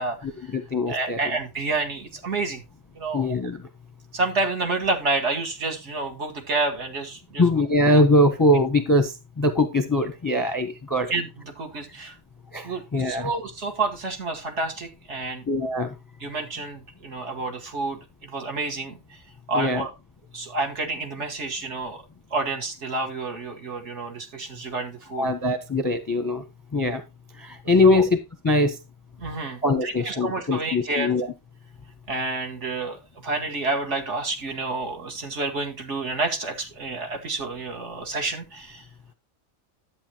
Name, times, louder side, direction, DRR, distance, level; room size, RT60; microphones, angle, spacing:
voice 1, 0.2-1.2 3.1-3.6 7.4-11.1 12.5-13.3 15.5-15.9 16.3-16.4 19.5-19.8 25.2-26.4 26.7-27.0 27.4-28.1 28.4-28.8 29.6-31.3, left 1 dB, 20° left, 0.7 m, -22 dB
voice 2, 0.9-2.6 2.9-3.3 4.1-7.4 11.1-11.3 11.6-12.2 12.6-15.5 16.2-19.2 19.5-19.9 20.3-22.0 22.3-25.3 27.8-28.0 29.2-31.1 32.1-38.9, right 3 dB, 55° right, 1.8 m, -29 dB
10.5 x 8.1 x 2.9 m
omnidirectional pair, 1.4 m